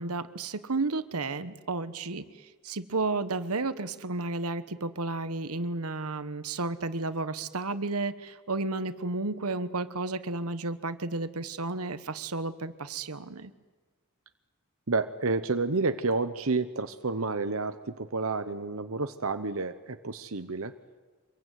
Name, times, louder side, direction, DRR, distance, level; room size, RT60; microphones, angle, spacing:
voice 1, 0.0-13.5, right 3 dB, 85° right, 13 dB, 1.2 m, -32 dB
voice 2, 14.9-20.7, right 3 dB, 65° right, 9 dB, 1.0 m, -30 dB
25.5 x 22.5 x 9.3 m, 1.4 s
head